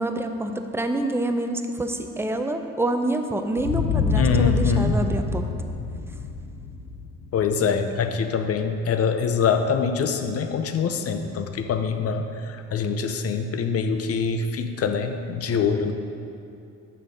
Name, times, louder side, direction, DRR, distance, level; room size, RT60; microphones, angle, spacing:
voice 1, 0.0-5.5, right 1 dB, 10° right, 6 dB, 0.5 m, -27 dB
sound 1, 3.6-8.2, left 4 dB, 90° left, 0.8 m, -26 dB
voice 2, 4.1-5.0 7.3-15.9, left 6 dB, 50° left, 7 dB, 0.6 m, -24 dB
6.7 x 5.4 x 4.9 m, 2.7 s
cardioid pair, 90°, 30 cm